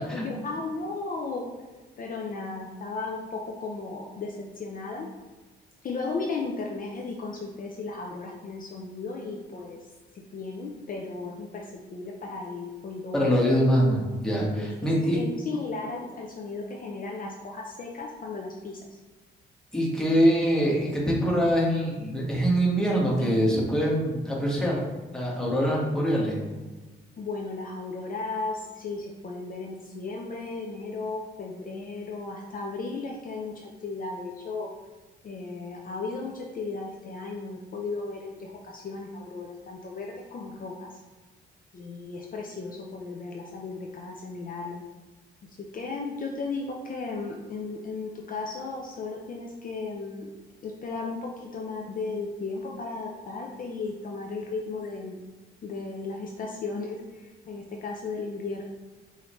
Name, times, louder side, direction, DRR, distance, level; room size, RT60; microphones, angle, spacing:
voice 1, 0.1-1.5 2.0-5.1 5.8-9.8 10.1-13.5 14.6-14.7 15.1-18.8 27.2-34.7 35.2-40.9 41.7-44.8 45.4-50.3 50.6-55.2 55.6-58.6, left 3 dB, 45° left, 0 dB, 0.6 m, -35 dB
voice 2, 13.1-15.2 19.7-24.8 25.1-26.4, equal, 5° left, -5 dB, 1.4 m, -24 dB
4.9 x 2.8 x 3.0 m, 1.3 s
cardioid pair, 90°, 20 cm